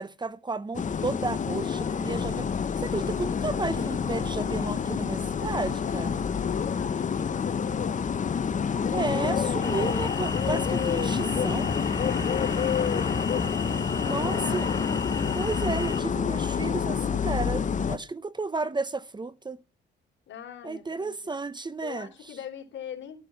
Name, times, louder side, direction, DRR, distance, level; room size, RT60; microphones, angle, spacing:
voice 1, 0.0-2.5 2.8-6.3 8.9-11.7 14.0-14.7 15.3-19.6 20.6-22.4, right 3 dB, 20° right, 0.9 m, -33 dB
sound 1, 0.7-18.0, left 7 dB, 40° left, 1.0 m, -28 dB
voice 2, 5.4-8.1 12.1-13.2 14.0-14.8 20.3-21.3 21.8-23.2, left 9 dB, 70° left, 3.6 m, -41 dB
sound 2, 9.6-16.0, left 2 dB, 15° left, 2.5 m, -36 dB
13.0 x 9.5 x 7.2 m
cardioid pair, 90°, 20 cm